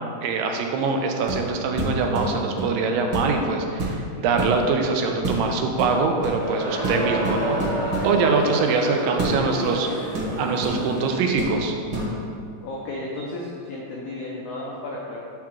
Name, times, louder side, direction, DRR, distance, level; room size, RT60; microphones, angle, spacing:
voice 1, 0.2-7.6 8.0-11.7, right 4 dB, 90° right, 3 dB, 2.3 m, -23 dB
sound 1, 1.2-1.5 1.8-2.8 3.1-3.4 3.8-4.6 5.2-5.5 5.8-6.4 6.8-8.1 9.2-9.4 10.1-11.1 11.4-11.6 11.9-12.1, right 2 dB, 55° right, 1.6 m, -28 dB
Crowd, 6.2-11.3, right 1 dB, 70° right, 1.1 m, -30 dB
voice 2, 12.6-15.2, left 2 dB, 85° left, -4 dB, 1.4 m, -33 dB
5.8 x 3.6 x 6.0 m, 2.4 s
omnidirectional pair, 3.9 m